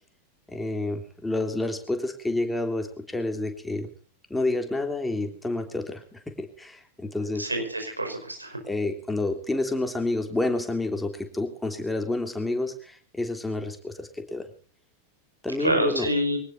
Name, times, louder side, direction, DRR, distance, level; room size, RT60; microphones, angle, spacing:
voice 1, 0.5-3.9 4.3-7.5 8.7-14.5 15.4-16.1, left 2 dB, 5° left, 5 dB, 3.1 m, -29 dB
voice 2, 7.4-8.6 15.6-16.4, right 1 dB, 85° right, 4 dB, 5.2 m, -27 dB
23.5 x 19.0 x 2.7 m, 0.41 s
figure-of-eight pair, 90°, 0 cm